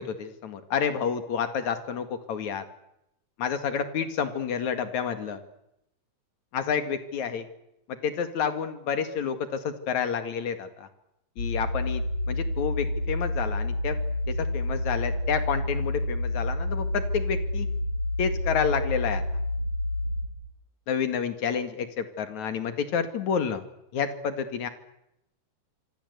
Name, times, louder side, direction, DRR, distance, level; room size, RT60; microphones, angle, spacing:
voice 1, 0.0-2.6 3.4-5.4 6.5-7.5 8.0-10.9 11.4-14.0 14.3-17.7 18.2-19.2 20.9-23.6 23.9-24.7, left 7 dB, 75° left, 9 dB, 3.5 m, -29 dB
sound 1, 11.4-20.3, left 1 dB, 45° left, 4.4 m, -29 dB
26.0 x 24.5 x 8.3 m, 0.82 s
omnidirectional pair, 3.3 m